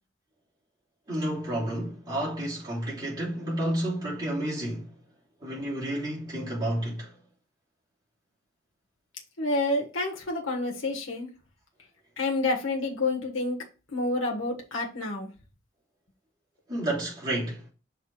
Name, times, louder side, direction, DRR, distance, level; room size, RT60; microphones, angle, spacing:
voice 1, 1.1-4.9 5.4-7.2 16.7-17.7, right 1 dB, 20° right, 3.2 m, -31 dB
voice 2, 9.4-11.3 12.2-13.6 13.9-15.3, left 2 dB, 70° left, 1.4 m, -28 dB
5.8 x 3.6 x 4.9 m
head